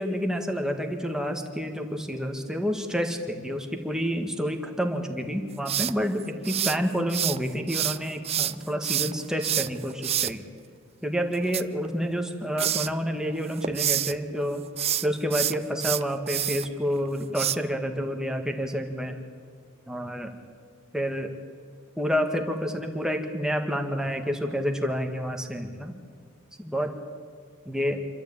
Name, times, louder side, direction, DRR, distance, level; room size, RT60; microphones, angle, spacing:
voice 1, 0.0-10.4 11.0-14.6 15.0-19.2 19.9-20.3 20.9-21.3 22.0-25.9 26.6-26.9 27.7-28.0, equal, 5° right, 4 dB, 1.9 m, -29 dB
sound 1, 5.7-7.4 7.7-10.3 11.3-12.3 12.6-12.9 13.4-14.1 14.7-16.7 17.4-17.6, right 11 dB, 30° right, 0.5 m, -27 dB
27.0 x 13.5 x 8.9 m, 2.1 s
head